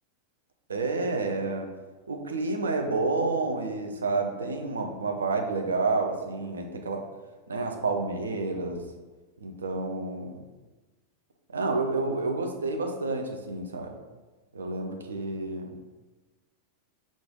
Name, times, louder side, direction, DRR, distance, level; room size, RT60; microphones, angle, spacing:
voice 1, 0.7-1.7 2.1-7.0 7.5-8.8 9.4-10.4 11.5-13.9 14.5-15.7, right 3 dB, 70° right, 4 dB, 0.5 m, -29 dB
5.0 x 2.5 x 3.6 m, 1.2 s
figure-of-eight pair, 90°, 0 cm